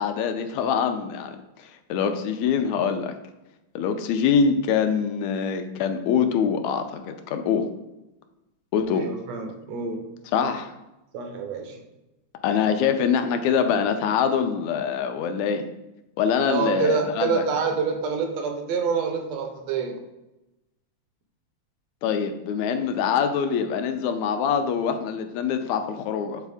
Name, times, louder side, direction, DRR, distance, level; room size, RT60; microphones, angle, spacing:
voice 1, 0.0-1.4 1.9-3.1 3.8-7.7 8.7-9.1 10.3-10.7 12.4-15.6 16.2-17.4 22.0-26.4, left 7 dB, 80° left, 7 dB, 1.8 m, -24 dB
voice 2, 8.9-10.1 11.1-11.8 16.5-20.0, right 5 dB, 70° right, 4 dB, 1.8 m, -27 dB
8.2 x 4.1 x 3.5 m, 0.97 s
omnidirectional pair, 3.4 m